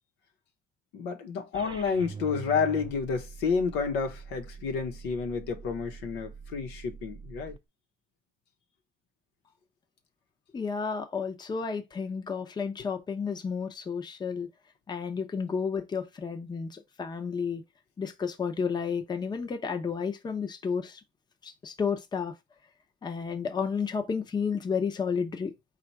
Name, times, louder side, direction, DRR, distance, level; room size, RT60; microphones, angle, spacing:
voice 1, 0.9-7.6, left 5 dB, 90° left, 1.0 m, -30 dB
sound 1, 1.5-7.6, right 5 dB, 30° right, 0.5 m, -44 dB
voice 2, 10.5-14.5 14.9-17.6 18.0-21.0 21.4-22.3 23.0-25.5, left 6 dB, 25° left, 0.7 m, -31 dB
4.2 x 2.5 x 4.5 m
cardioid pair, 110°, 17 cm